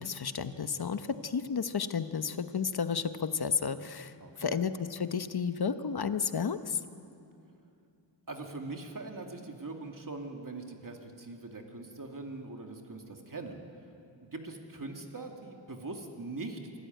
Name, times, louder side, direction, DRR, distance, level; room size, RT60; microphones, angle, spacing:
voice 1, 0.0-6.8, left 6 dB, 50° left, 11 dB, 1.0 m, -32 dB
voice 2, 4.2-4.6 8.3-13.6 14.2-16.8, right 3 dB, 40° right, 3 dB, 2.5 m, -42 dB
24.5 x 13.5 x 9.3 m, 2.6 s
wide cardioid pair, 80°, 48 cm